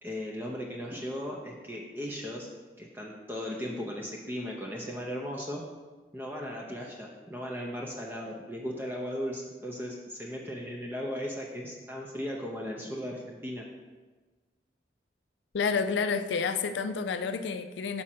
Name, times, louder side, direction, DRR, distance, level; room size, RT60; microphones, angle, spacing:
voice 1, 0.0-2.5 2.8-5.6 6.1-13.7, equal, 10° right, -2 dB, 0.5 m, -37 dB
voice 2, 15.5-18.0, left 5 dB, 80° left, 10 dB, 0.4 m, -29 dB
6.0 x 4.9 x 4.2 m, 1.3 s
head